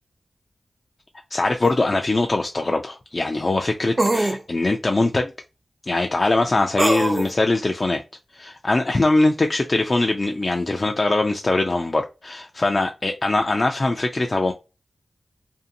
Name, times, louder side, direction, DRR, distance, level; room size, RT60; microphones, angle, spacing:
voice 1, 1.3-5.3 5.9-8.0 8.3-14.5, left 2 dB, 45° left, 0.3 m, -22 dB
sound 1, 1.6-1.7 4.0-4.4 6.8-7.3, right 2 dB, 35° right, 0.3 m, -21 dB
2.6 x 2.5 x 2.6 m
cardioid pair, 50°, 0 cm